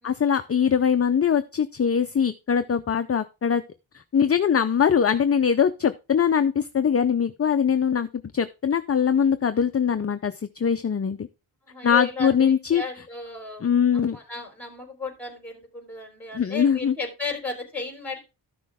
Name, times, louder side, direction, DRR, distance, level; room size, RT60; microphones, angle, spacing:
voice 1, 0.0-3.6 3.9-8.1 8.3-11.3 11.8-12.8 13.6-14.2 16.3-16.9, left 7 dB, 30° left, 10 dB, 0.4 m, -22 dB
voice 2, 11.7-13.6 14.1-18.2, left 3 dB, 5° left, 2 dB, 3.6 m, -34 dB
13.0 x 6.1 x 3.5 m, 0.28 s
wide cardioid pair, 100°, 50 cm